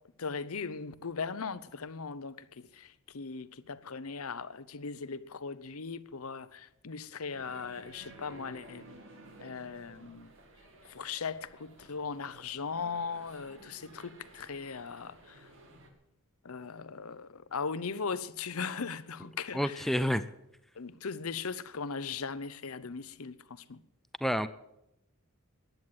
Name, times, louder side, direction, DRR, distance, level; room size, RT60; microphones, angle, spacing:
voice 1, 0.2-8.9 9.4-10.3 10.9-15.5 16.4-20.0 20.8-23.8, left 5 dB, 80° left, 0.8 m, -39 dB
sound 1, 7.3-15.9, right 1 dB, 65° right, 2.4 m, -54 dB
voice 2, 19.5-20.2 24.2-24.5, equal, ahead, 0.5 m, -28 dB
15.0 x 10.5 x 7.9 m
head